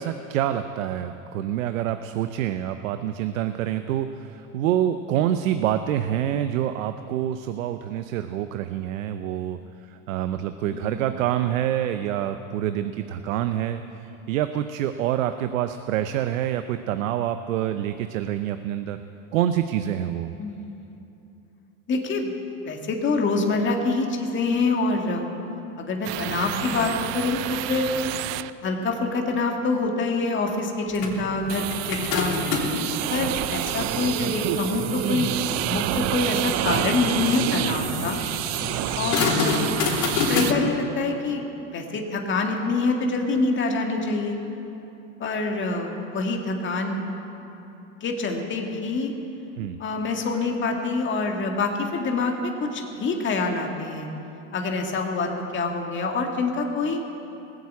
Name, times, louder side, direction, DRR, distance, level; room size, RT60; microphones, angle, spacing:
voice 1, 0.0-19.0 19.3-20.3 49.6-49.8, right 11 dB, 85° right, 9 dB, 0.7 m, -27 dB
voice 2, 10.7-11.0 20.4-21.0 21.9-22.3 22.7-25.3 25.8-27.9 28.6-32.4 33.1-35.3 35.6-38.2 39.0-39.6 40.3-44.4 45.2-47.1 48.0-49.1 49.8-54.1 54.5-57.0, left 3 dB, 30° left, 2 dB, 2.0 m, -26 dB
sound 1, 26.0-28.5 31.5-40.5, right 14 dB, 45° right, 0.5 m, -28 dB
sound 2, 30.9-32.9 33.5-40.5, left 4 dB, 55° left, 3.6 m, -29 dB
19.5 x 8.0 x 8.5 m, 2.9 s
supercardioid pair, 115°, 39 cm